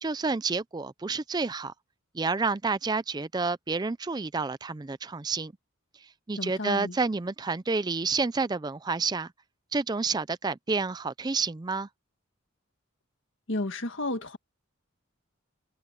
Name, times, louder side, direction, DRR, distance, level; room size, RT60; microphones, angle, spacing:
voice 1, 0.0-1.7 2.1-5.5 6.3-9.3 9.7-11.9, right 4 dB, 20° right, 0.4 m, -29 dB
voice 2, 6.4-7.0 13.5-14.4, left 2 dB, 65° left, 1.8 m, -32 dB
head